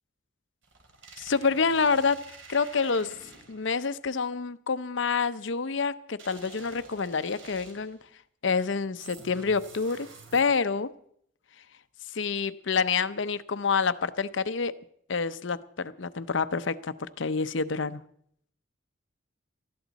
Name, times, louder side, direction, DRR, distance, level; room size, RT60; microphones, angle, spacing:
sound 1, 0.6-3.8 6.2-8.0 9.0-10.8, right 3 dB, 75° right, 3.4 m, -49 dB
voice 1, 1.2-2.2 2.5-3.1 3.5-8.0 8.4-10.1 10.3-10.9 12.1-14.7 15.1-18.0, left 5 dB, 65° left, 14 dB, 0.7 m, -27 dB
19.5 x 14.0 x 4.1 m, 0.68 s
head